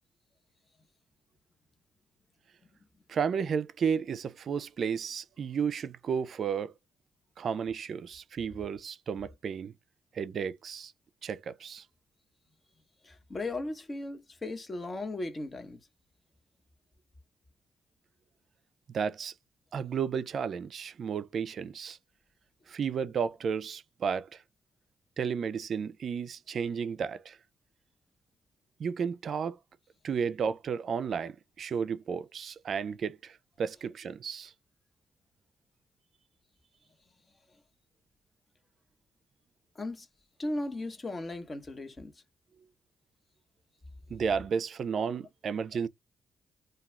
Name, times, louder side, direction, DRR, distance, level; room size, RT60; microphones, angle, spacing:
voice 1, 3.1-6.7 7.4-9.7 10.1-10.9 11.2-11.8 18.9-19.3 19.7-22.0 22.7-24.4 25.2-27.4 28.8-29.6 30.0-34.5 44.1-45.9, right 6 dB, 65° right, 0.4 m, -33 dB
voice 2, 13.0-15.8 39.8-40.1 40.4-42.1, left 2 dB, 35° left, 1.0 m, -36 dB
2.3 x 2.3 x 3.1 m
supercardioid pair, 55°, 0 cm